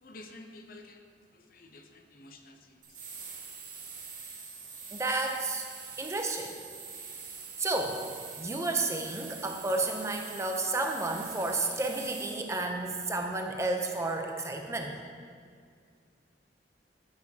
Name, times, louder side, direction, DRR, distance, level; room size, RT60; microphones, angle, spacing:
voice 1, 0.0-3.1, left 2 dB, 50° left, 5 dB, 0.6 m, -51 dB
sound 1, 2.8-12.4, right 5 dB, 50° right, 1.5 m, -44 dB
voice 2, 4.9-5.7 6.0-6.5 7.6-8.0 8.4-14.9, right 2 dB, 15° right, 3 dB, 0.5 m, -31 dB
12.5 x 6.8 x 2.8 m, 2.1 s
head